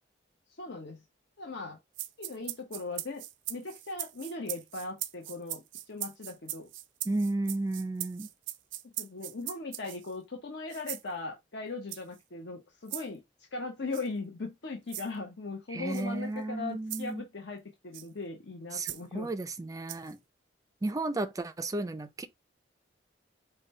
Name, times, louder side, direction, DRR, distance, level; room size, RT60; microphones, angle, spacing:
voice 1, 0.6-1.0 1.4-1.8 2.2-3.2 3.5-6.7 8.8-13.2 13.5-19.3, left 3 dB, 65° left, 0.8 m, -39 dB
sound 1, 1.9-10.1 10.7-11.1 11.9-12.2 12.9-13.1 13.9-14.1 14.9-15.1 15.9-16.0 16.9-17.1 17.9-18.1 18.8-19.0 19.9-20.1, right 14 dB, 80° right, 0.4 m, -40 dB
voice 2, 7.0-8.3 15.7-17.2 18.7-20.2 20.8-22.3, right 2 dB, 20° right, 0.4 m, -33 dB
5.0 x 2.2 x 4.0 m
head